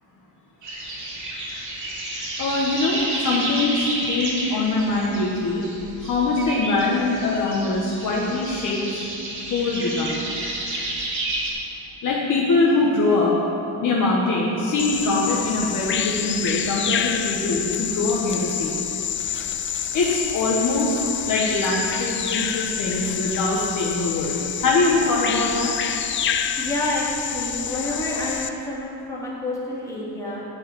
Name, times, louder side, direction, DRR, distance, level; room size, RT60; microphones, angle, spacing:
sound 1, 0.6-11.5, right 1 dB, 45° right, 2.5 m, -31 dB
voice 1, 2.4-5.7 6.0-9.0 9.5-10.2 12.0-13.3 13.8-18.7 19.9-20.9 21.3-24.3 24.6-25.7, left 3 dB, 45° left, -4 dB, 1.4 m, -23 dB
Bird vocalization bird call bird song, 14.8-28.5, left 8 dB, 30° left, 0.4 m, -27 dB
voice 2, 26.6-30.4, left 1 dB, 10° left, -8 dB, 2.6 m, -28 dB
11.0 x 4.8 x 8.4 m, 2.7 s
cardioid pair, 150°, 42 cm